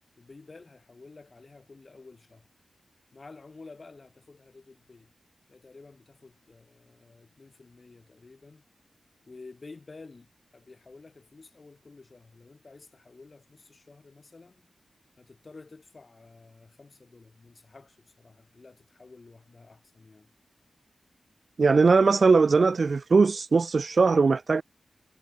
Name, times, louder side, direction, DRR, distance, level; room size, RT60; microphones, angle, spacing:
voice 1, 0.2-2.5 3.1-5.1 5.5-8.6 9.3-14.7 15.2-20.3, left 3 dB, 40° left, 5.6 m, -51 dB
voice 2, 21.6-24.6, right 4 dB, 50° right, 0.4 m, -20 dB
wide cardioid pair, 100°, 0 cm